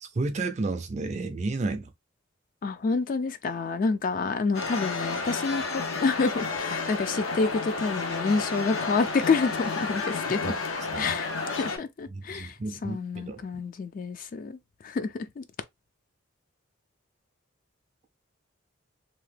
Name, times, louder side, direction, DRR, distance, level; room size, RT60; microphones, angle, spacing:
voice 1, 0.0-1.9 10.4-10.5 10.9-11.1 12.1-13.4, right 3 dB, 35° right, 0.4 m, -32 dB
voice 2, 2.6-10.5 11.0-12.5 12.8-15.4, left 4 dB, 45° left, 0.3 m, -28 dB
sound 1, 4.5-11.8, left 4 dB, 90° left, 0.8 m, -31 dB
2.8 x 2.2 x 3.2 m
head